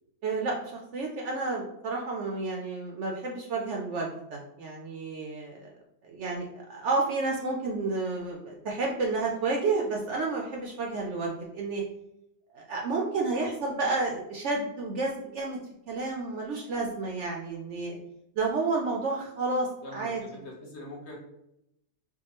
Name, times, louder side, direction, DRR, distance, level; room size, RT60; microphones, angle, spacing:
voice 1, 0.2-5.7 6.0-11.8 12.5-15.6 15.9-18.0 18.4-20.2, right 3 dB, 65° right, -1 dB, 0.7 m, -31 dB
voice 2, 19.8-21.2, left 1 dB, 55° left, -3 dB, 1.0 m, -43 dB
4.7 x 2.2 x 2.9 m, 0.80 s
omnidirectional pair, 1.6 m